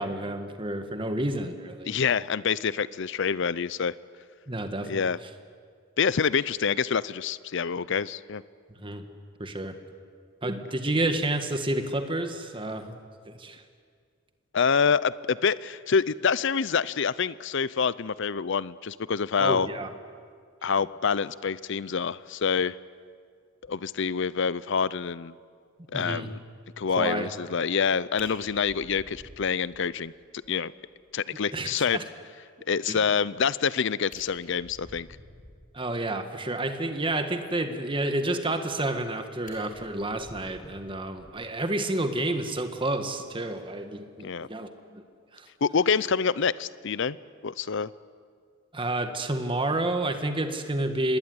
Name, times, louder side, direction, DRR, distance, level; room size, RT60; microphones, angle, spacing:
voice 1, 0.0-1.9 4.5-5.1 8.8-9.0 9.4-9.8 10.4-12.9 13.3-13.6 19.4-19.9 25.9-26.3 27.0-27.3 31.5-32.0 32.9-33.0 35.7-45.0 45.3-45.5 48.7-51.2, right 1 dB, 25° right, 7 dB, 1.8 m, -30 dB
voice 2, 1.9-3.9 4.8-5.2 6.0-8.4 14.5-19.7 20.6-22.8 23.7-25.3 25.9-26.4 26.8-30.1 30.5-30.7 31.1-32.0 32.7-35.1 44.2-44.5 45.6-47.2 47.4-47.9, left 6 dB, 60° left, 19 dB, 0.6 m, -26 dB
Fire, 28.1-30.1 30.4-30.5 30.9-31.0 31.4-31.5 33.6-33.7 34.0-35.7 38.5-39.1 39.4-41.6 42.9-43.1, left 2 dB, 40° left, 5.6 m, -50 dB
25.5 x 19.5 x 9.7 m, 2.1 s
head